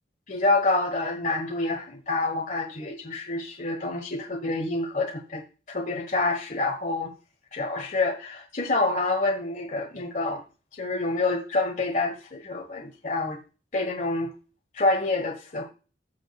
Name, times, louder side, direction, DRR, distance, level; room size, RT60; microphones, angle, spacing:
voice 1, 0.3-5.4 5.7-7.1 7.5-10.4 10.8-13.4 13.7-14.3 14.7-15.6, left 2 dB, 45° left, 1.3 m, -27 dB
14.0 x 6.3 x 2.3 m
head